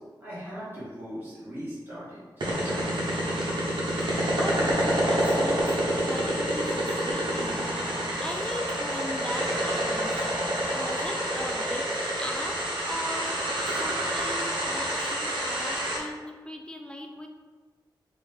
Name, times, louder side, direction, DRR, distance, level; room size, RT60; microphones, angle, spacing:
voice 1, 0.2-2.9, equal, 25° right, -13 dB, 1.4 m, -39 dB
sound 1, 2.4-16.0, right 1 dB, 75° right, 0.8 m, -28 dB
voice 2, 4.4-10.3 10.7-11.9 12.2-12.6 12.8-13.4 13.8-17.3, left 1 dB, 10° left, 2 dB, 0.3 m, -38 dB
3.1 x 2.7 x 3.4 m, 1.4 s
wide cardioid pair, 110°, 8 cm